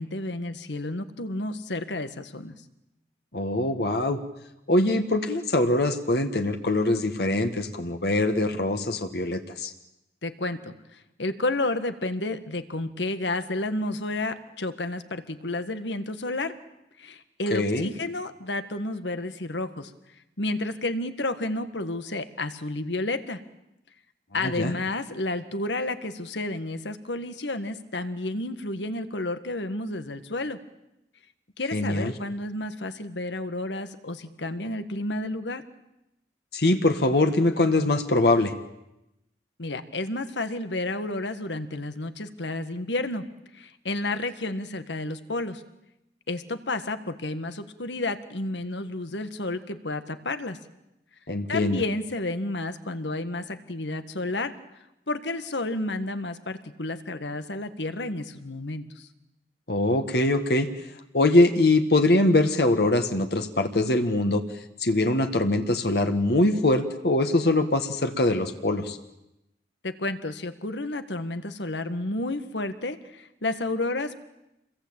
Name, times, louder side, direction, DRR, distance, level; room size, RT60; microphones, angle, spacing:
voice 1, 0.0-2.5 10.2-16.6 17.0-19.9 20.4-23.4 24.3-30.6 31.6-35.6 39.6-43.2 43.5-45.6 46.3-50.6 51.5-54.5 55.1-59.1 69.8-74.2, left 2 dB, 90° left, 10 dB, 1.8 m, -31 dB
voice 2, 3.3-4.2 4.7-9.7 17.5-17.9 24.4-24.7 31.7-32.1 36.5-38.5 51.3-51.8 59.7-60.9 61.1-64.4 64.8-69.0, left 2 dB, 65° left, 6 dB, 1.7 m, -23 dB
28.0 x 22.0 x 8.9 m, 0.90 s
head